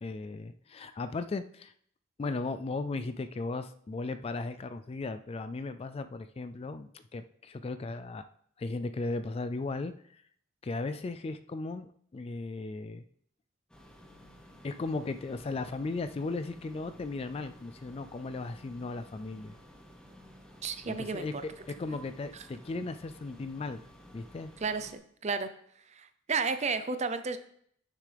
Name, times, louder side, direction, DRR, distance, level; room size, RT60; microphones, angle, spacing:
voice 1, 0.0-1.7 2.2-8.2 8.6-10.2 10.6-11.9 12.1-13.0 14.6-19.5 20.8-23.8 24.1-24.5, left 3 dB, 30° left, 11 dB, 0.3 m, -36 dB
sound 1, 13.7-25.0, equal, 5° left, 1.0 m, -54 dB
voice 2, 20.6-21.4 24.6-25.5 26.0-27.4, right 4 dB, 35° right, 11 dB, 0.5 m, -32 dB
9.7 x 6.5 x 3.4 m, 0.65 s
head